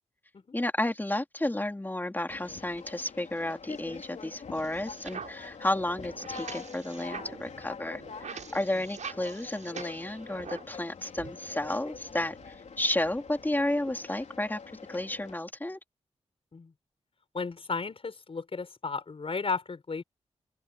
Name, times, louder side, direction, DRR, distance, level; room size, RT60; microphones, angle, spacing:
voice 1, 0.5-8.0 8.3-14.6 14.9-15.8, left 1 dB, 15° left, 3.1 m, -32 dB
Conversation, 2.3-15.3, left 6 dB, 70° left, 3.7 m, -45 dB
sound 1, 4.5-10.8 11.1-14.0, right 6 dB, 80° right, 6.6 m, -46 dB
voice 2, 17.3-20.0, left 4 dB, 50° left, 6.0 m, -34 dB
open air
cardioid pair, 70°, 12 cm